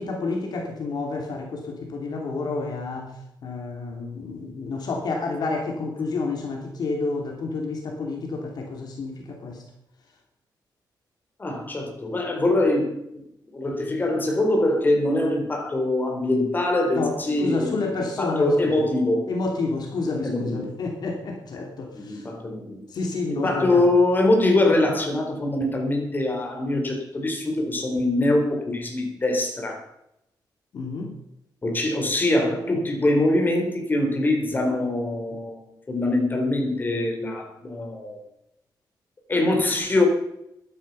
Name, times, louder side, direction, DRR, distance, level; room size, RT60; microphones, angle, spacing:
voice 1, 0.0-3.1 3.4-9.6 16.9-18.8 19.3-22.3 22.9-23.8 30.7-31.2, left 3 dB, 60° left, 2 dB, 2.9 m, -29 dB
voice 2, 11.4-13.0 13.5-17.8 18.2-19.3 20.2-20.7 21.9-22.8 23.3-29.8 31.6-38.2 39.3-40.0, left 2 dB, 25° left, 2 dB, 4.3 m, -23 dB
16.0 x 12.0 x 5.6 m, 0.81 s
wide cardioid pair, 150°, 8 cm